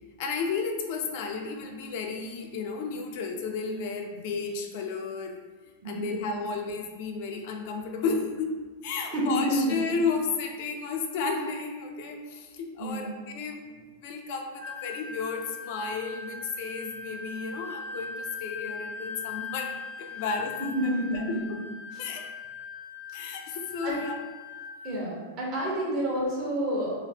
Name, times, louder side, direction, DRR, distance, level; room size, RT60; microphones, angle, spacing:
voice 1, 0.2-5.4 5.8-21.6 22.0-22.3 23.1-24.2, left 4 dB, 60° left, 3 dB, 0.4 m, -33 dB
voice 2, 9.1-9.7 12.8-13.1 20.7-21.4 23.8-24.0 24.8-26.9, right 1 dB, 45° right, -4 dB, 1.0 m, -28 dB
Wind instrument woodwind instrument, 14.6-25.0, left 5 dB, 85° right, 0.8 m, -40 dB
2.8 x 2.0 x 3.4 m, 1.4 s
hypercardioid pair, 120°, 0 cm